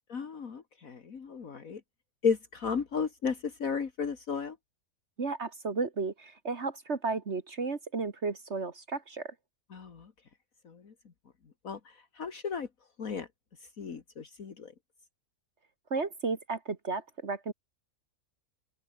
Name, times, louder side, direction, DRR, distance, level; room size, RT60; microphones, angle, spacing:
voice 1, 0.1-1.8 2.2-4.6 9.7-10.1 10.7-10.9 11.6-12.7 13.0-13.3 13.8-14.7, left 6 dB, 65° left, 2.2 m, -34 dB
voice 2, 5.2-9.3 15.9-17.5, right 4 dB, 50° right, 1.9 m, -33 dB
open air
omnidirectional pair, 1.6 m